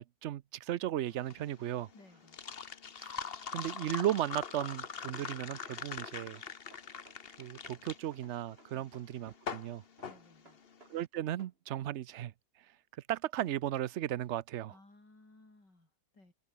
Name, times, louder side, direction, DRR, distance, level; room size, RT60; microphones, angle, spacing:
voice 1, 0.0-1.9 3.0-3.2 3.5-6.4 7.4-9.8 10.9-12.3 13.1-14.7, right 12 dB, 65° right, 0.7 m, -36 dB
sound 1, 1.1-11.0, left 6 dB, 40° left, 1.2 m, -43 dB
voice 2, 1.9-2.4 8.7-8.9 10.0-10.6 14.7-16.3, left 2 dB, 85° left, 7.9 m, -60 dB
sound 2, 4.5-5.9 6.2-7.8 8.1-9.7 10.0-11.6, right 2 dB, 35° right, 3.9 m, -61 dB
open air
omnidirectional pair, 1.8 m